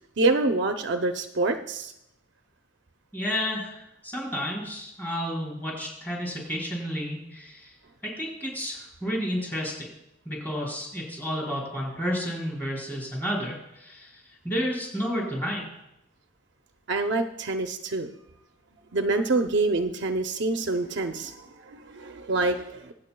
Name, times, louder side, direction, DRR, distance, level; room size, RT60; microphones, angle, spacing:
voice 1, 0.2-1.9 16.9-18.1 18.9-22.9, right 3 dB, 55° right, 6 dB, 0.6 m, -26 dB
voice 2, 3.1-7.7 8.0-9.9 10.2-15.6, equal, 10° left, -4 dB, 4.7 m, -31 dB
23.5 x 8.7 x 2.3 m, 0.85 s
head